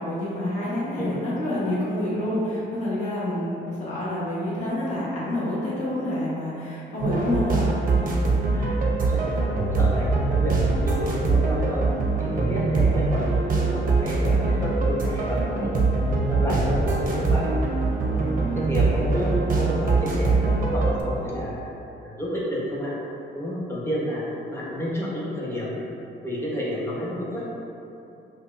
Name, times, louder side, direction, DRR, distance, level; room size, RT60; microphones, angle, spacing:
voice 1, 0.0-7.8, left 1 dB, 35° left, -10 dB, 1.3 m, -27 dB
sound 1, 7.0-21.0, right 3 dB, 45° right, 0.6 m, -23 dB
voice 2, 8.5-10.6 10.8-11.9 12.2-15.9 16.3-17.5 18.0-18.3 18.5-21.5 22.0-22.9 23.3-25.8 26.2-27.4, equal, 10° left, -7 dB, 1.0 m, -30 dB
5.3 x 2.2 x 2.6 m, 2.8 s
cardioid pair, 90°, 20 cm